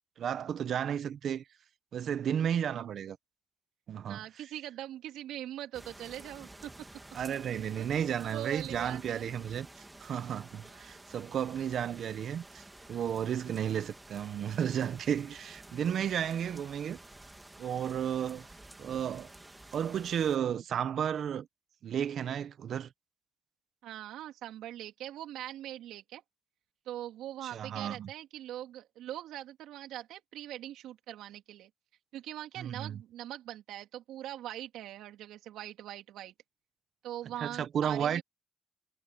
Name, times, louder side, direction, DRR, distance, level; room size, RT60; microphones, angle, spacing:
voice 1, 0.2-1.4 1.9-3.2 3.9-4.2 7.1-17.0 17.6-18.5 18.8-19.3 19.7-21.5 21.8-22.9 27.4-28.1 32.6-33.0 37.4-38.2, right 9 dB, 65° right, 1.2 m, -33 dB
voice 2, 4.1-6.7 7.8-9.3 10.6-11.0 16.3-16.7 23.8-26.2 26.9-31.7 32.1-36.3 37.0-38.2, right 12 dB, 85° right, 3.6 m, -42 dB
sound 1, 5.7-20.4, right 2 dB, 15° right, 2.4 m, -52 dB
cardioid pair, 90°, 0 cm